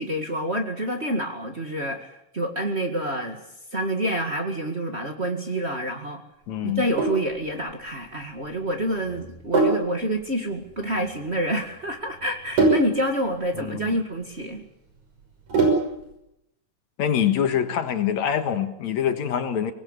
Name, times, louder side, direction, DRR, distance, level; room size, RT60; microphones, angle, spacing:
voice 1, 0.0-3.4 3.7-6.2 6.6-14.6, right 1 dB, 25° right, 2 dB, 1.9 m, -28 dB
voice 2, 6.5-6.9 13.5-14.0 17.0-19.7, left 9 dB, 70° left, 8 dB, 2.8 m, -25 dB
Sink (filling or washing), 6.7-16.1, right 3 dB, 80° right, 7.2 m, -26 dB
25.0 x 19.5 x 8.2 m, 0.83 s
omnidirectional pair, 3.4 m